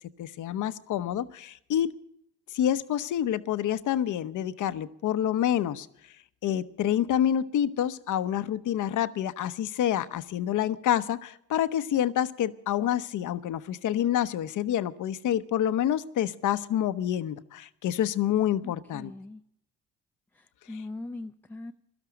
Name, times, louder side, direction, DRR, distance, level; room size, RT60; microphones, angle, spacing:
voice 1, 0.2-1.9 2.5-5.9 6.4-19.1 20.7-20.8, left 10 dB, 65° left, 12 dB, 0.9 m, -27 dB
voice 2, 18.6-19.4 20.4-21.7, left 2 dB, 5° left, 5 dB, 0.6 m, -41 dB
17.0 x 12.5 x 5.1 m, 0.74 s
supercardioid pair, 80°, 33 cm